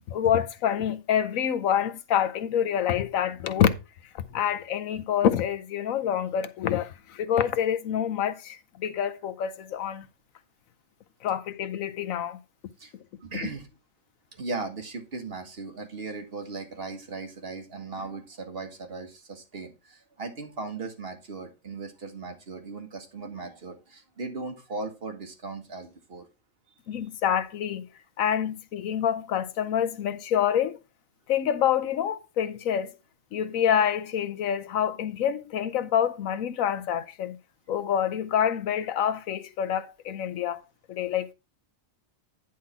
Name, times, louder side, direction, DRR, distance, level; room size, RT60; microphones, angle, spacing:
voice 1, 0.1-3.8 4.1-10.1 11.2-12.4 26.9-27.8 28.2-30.8 31.3-32.9 33.3-37.4 37.7-40.6 40.9-41.3, left 9 dB, 85° left, 1.2 m, -27 dB
voice 2, 13.2-13.7 14.3-26.3, right 3 dB, 50° right, 1.8 m, -37 dB
10.0 x 3.7 x 5.6 m
omnidirectional pair, 1.4 m